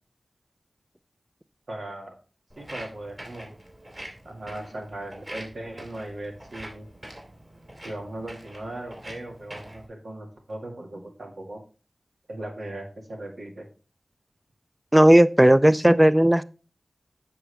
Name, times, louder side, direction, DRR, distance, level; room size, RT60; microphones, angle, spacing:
voice 1, 1.7-2.2 2.6-3.5 4.3-6.9 7.8-11.6 12.3-13.7, right 1 dB, 80° right, 1 dB, 1.9 m, -38 dB
Walk footsteps, 2.5-9.9, right 1 dB, 40° right, 3.2 m, -44 dB
voice 2, 14.9-16.4, right 1 dB, 15° right, 16 dB, 0.5 m, -15 dB
7.6 x 6.1 x 3.3 m, 0.36 s
cardioid pair, 45°, 0 cm